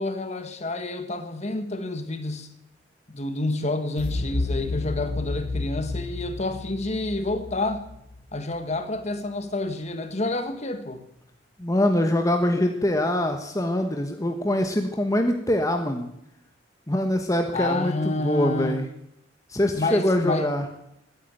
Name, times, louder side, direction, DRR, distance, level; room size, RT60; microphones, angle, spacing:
voice 1, 0.0-2.5 3.1-7.8 8.3-11.0 17.5-18.8 19.7-20.5, left 2 dB, 40° left, 1.6 m, -29 dB
sound 1, 4.0-8.8, left 3 dB, 55° left, 1.1 m, -31 dB
voice 2, 11.6-16.1 16.9-18.8 19.5-20.6, left 1 dB, 20° left, 1.2 m, -24 dB
16.0 x 9.8 x 9.1 m
head